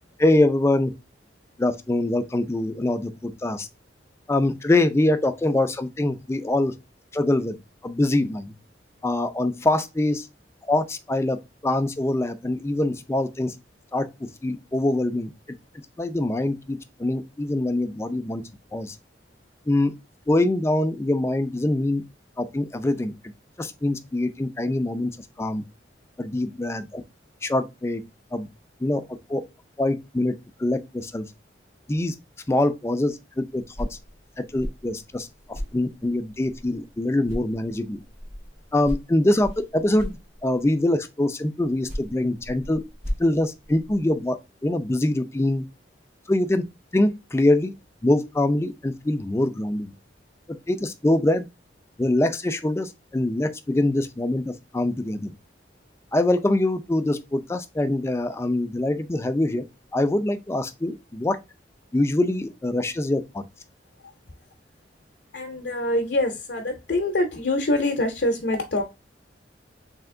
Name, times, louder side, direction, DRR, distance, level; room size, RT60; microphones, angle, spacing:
voice 1, 0.2-0.9 1.6-3.7 4.3-6.7 7.1-7.6 7.8-8.5 9.0-10.3 10.7-11.4 11.6-13.5 13.9-15.3 16.0-18.4 18.7-19.0 19.7-19.9 20.3-22.0 22.4-23.1 23.6-25.1 25.4-25.6 26.2-27.0 27.4-28.0 28.3-28.5 28.8-29.0 29.3-29.4 29.8-31.3 31.9-32.1 32.5-34.0 34.4-38.0 38.7-42.8 43.2-44.4 44.6-45.6 46.3-46.6 46.9-47.7 48.0-49.9 50.5-51.5 52.0-55.3 56.1-59.6 59.9-61.4 61.9-63.4, left 1 dB, 15° left, 0.4 m, -24 dB
sound 1, 33.7-36.9 37.2-40.8 41.6-44.3, equal, 45° right, 1.5 m, -37 dB
voice 2, 65.3-68.8, left 1 dB, 65° left, 0.7 m, -25 dB
3.4 x 2.8 x 3.6 m
head